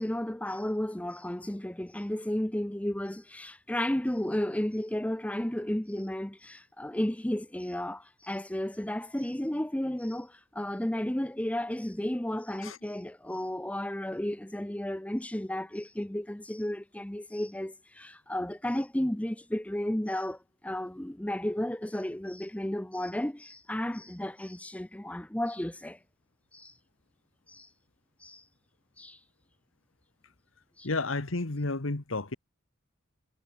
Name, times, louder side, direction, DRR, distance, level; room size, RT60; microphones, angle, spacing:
voice 1, 0.0-26.0 26.5-26.7 27.5-27.7 28.2-28.4 29.0-29.2 30.8-30.9, left 1 dB, 5° left, 0.6 m, -33 dB
voice 2, 30.8-32.4, left 3 dB, 90° left, 1.6 m, -31 dB
head